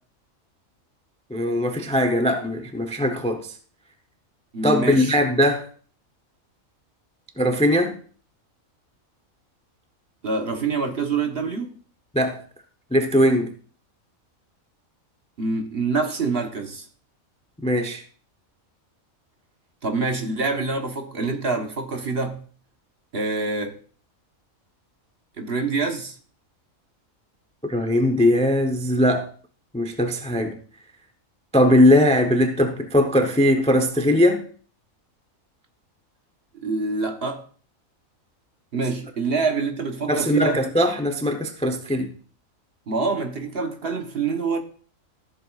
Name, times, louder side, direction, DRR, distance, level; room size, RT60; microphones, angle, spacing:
voice 1, 1.3-3.5 4.6-5.7 7.4-8.0 12.1-12.4 12.9-13.5 17.6-18.0 27.7-29.3 29.7-30.6 31.5-34.5 40.1-42.1, left 1 dB, 5° left, 0.6 m, -20 dB
voice 2, 4.5-5.2 10.2-11.7 15.4-16.9 19.8-22.4 23.1-23.8 25.4-26.2 36.6-37.4 38.7-40.6 42.9-44.6, right 4 dB, 50° right, 1.3 m, -26 dB
14.0 x 7.6 x 2.4 m
omnidirectional pair, 1.4 m